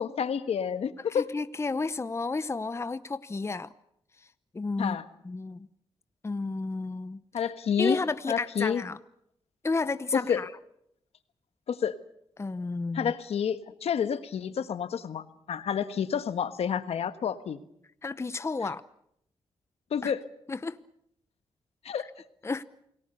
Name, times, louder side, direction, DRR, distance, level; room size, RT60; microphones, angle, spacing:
voice 1, 0.0-1.3 4.8-5.0 7.3-8.0 8.3-8.8 10.1-10.4 11.7-12.0 12.9-17.6 19.9-20.2 21.8-22.1, left 7 dB, 75° left, 11 dB, 1.4 m, -29 dB
voice 2, 1.1-3.7 4.5-5.0 5.2-5.7 6.2-7.2 7.8-9.0 9.6-10.5 12.4-13.1 18.0-18.8 20.0-20.1 20.5-20.8 22.4-22.6, left 3 dB, 25° left, 14 dB, 0.8 m, -31 dB
28.5 x 19.5 x 6.8 m, 0.73 s
cardioid pair, 80°, 11 cm